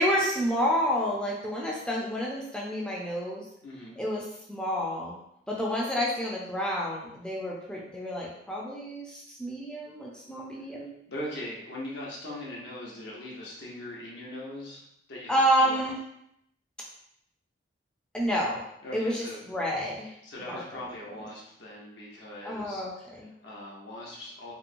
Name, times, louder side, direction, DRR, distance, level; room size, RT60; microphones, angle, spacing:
voice 1, 0.0-3.4 4.0-5.2 5.5-10.9 15.3-16.0 18.1-18.6 18.9-20.1 20.4-20.6 22.4-23.2, equal, 5° left, -4 dB, 0.4 m, -29 dB
voice 2, 3.6-4.0 11.1-14.8 15.1-15.9 18.8-19.4 20.2-24.5, left 1 dB, 75° left, -4 dB, 0.6 m, -40 dB
2.9 x 2.0 x 2.5 m, 0.77 s
head